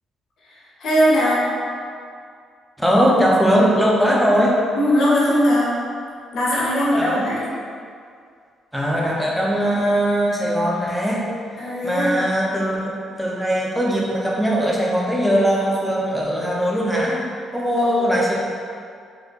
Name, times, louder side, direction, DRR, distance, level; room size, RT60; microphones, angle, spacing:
voice 1, 0.4-1.5 4.7-5.7 6.3-7.4 11.6-12.1 17.7-18.0, equal, 70° left, -7 dB, 0.9 m, -20 dB
voice 2, 2.8-4.6 7.0-7.4 8.7-11.3 11.8-17.2 17.5-18.4, equal, ahead, -4 dB, 0.6 m, -20 dB
4.2 x 2.1 x 2.5 m, 2.2 s
cardioid pair, 90°, 0 cm